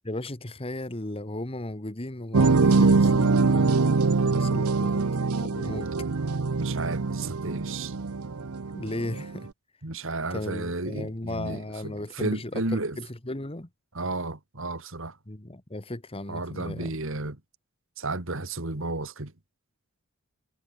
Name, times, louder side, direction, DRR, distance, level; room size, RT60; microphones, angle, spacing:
voice 1, 0.0-5.9 8.7-9.5 10.3-13.7 15.3-16.9, left 1 dB, 25° left, 1.6 m, -36 dB
sound 1, 2.3-9.4, right 4 dB, 85° right, 0.8 m, -23 dB
voice 2, 6.5-7.9 9.8-13.0 13.9-15.2 16.3-17.4 18.0-19.3, right 2 dB, 60° right, 2.2 m, -33 dB
head